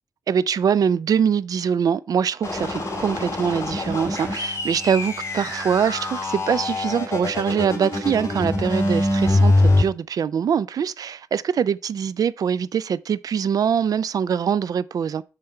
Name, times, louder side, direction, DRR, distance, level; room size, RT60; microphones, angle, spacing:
voice 1, 0.3-15.2, right 7 dB, 75° right, 0.4 m, -23 dB
sound 1, 2.4-9.8, left 2 dB, 45° left, 3.2 m, -23 dB
6.5 x 5.7 x 4.5 m
wide cardioid pair, 105°, 6 cm